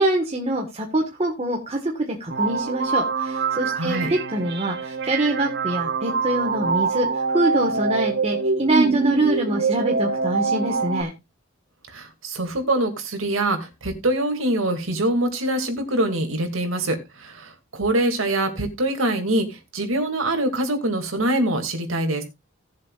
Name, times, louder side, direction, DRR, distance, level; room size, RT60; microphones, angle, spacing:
voice 1, 0.0-11.1, right 1 dB, 30° right, 0 dB, 1.6 m, -24 dB
sound 1, 2.3-11.0, right 4 dB, 55° right, 0.9 m, -24 dB
voice 2, 3.8-4.1 11.9-22.2, right 1 dB, 80° right, 5 dB, 2.4 m, -24 dB
17.5 x 7.5 x 2.5 m, 0.23 s
head